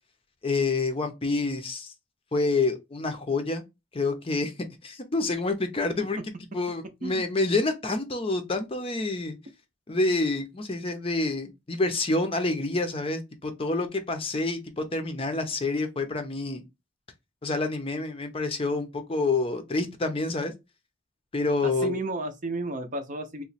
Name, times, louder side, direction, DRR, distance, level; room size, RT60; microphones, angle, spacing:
voice 1, 0.4-1.9 2.3-3.6 3.9-4.5 4.8-6.2 6.5-9.4 9.9-16.6 17.4-20.5 21.3-22.0, left 3 dB, 30° left, 0.6 m, -28 dB
voice 2, 21.6-23.4, right 2 dB, 40° right, 0.6 m, -33 dB
3.0 x 2.1 x 4.1 m
head